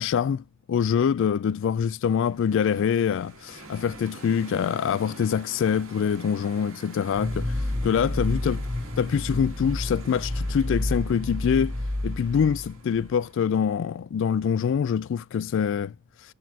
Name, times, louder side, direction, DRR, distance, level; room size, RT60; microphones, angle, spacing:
voice 1, 0.0-8.6 9.0-11.8 12.0-15.9, left 7 dB, 65° left, 0.3 m, -25 dB
sound 1, 2.1-13.4, right 3 dB, 85° right, 2.5 m, -46 dB
sound 2, 7.1-13.1, left 1 dB, 60° right, 2.3 m, -30 dB
10.0 x 4.4 x 2.7 m
head